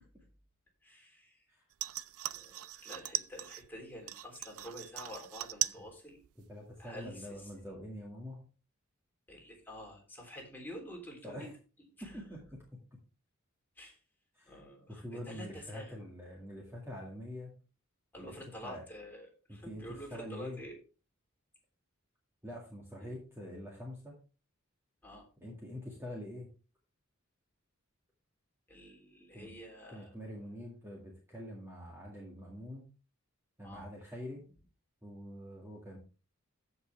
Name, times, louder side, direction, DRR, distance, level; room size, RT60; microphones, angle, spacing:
voice 1, 0.8-1.4 2.3-6.2 6.8-7.5 9.3-11.5 12.0-12.1 13.8-14.0 14.5-16.0 18.1-20.8 23.0-23.2 25.0-25.2 28.7-30.1 33.6-33.8, equal, 10° left, -1 dB, 3.4 m, -48 dB
sound 1, 1.7-3.7 4.1-5.9 6.1-6.7 7.1-7.2, right 14 dB, 85° right, 0.5 m, -38 dB
voice 2, 6.5-8.5 11.2-11.5 12.0-13.0 14.3-14.6 14.9-17.6 18.2-18.4 18.6-18.8 19.5-20.6 22.4-24.2 25.4-26.5 29.3-29.5 29.9-32.9 33.6-34.5 35.0-36.0, equal, 10° right, -2 dB, 2.0 m, -45 dB
14.5 x 5.6 x 3.4 m, 0.34 s
head